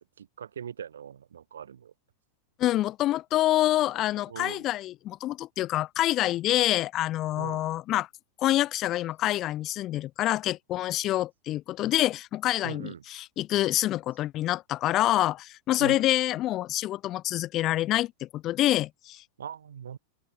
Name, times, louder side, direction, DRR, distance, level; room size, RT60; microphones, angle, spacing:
voice 1, 0.0-1.9 4.3-4.7 7.4-7.7 12.6-13.0 15.8-16.1 19.4-20.0, right 8 dB, 65° right, 3.5 m, -40 dB
voice 2, 2.6-8.1 8.4-19.2, left 14 dB, 35° left, 0.6 m, -27 dB
figure-of-eight pair, 90°, 0 cm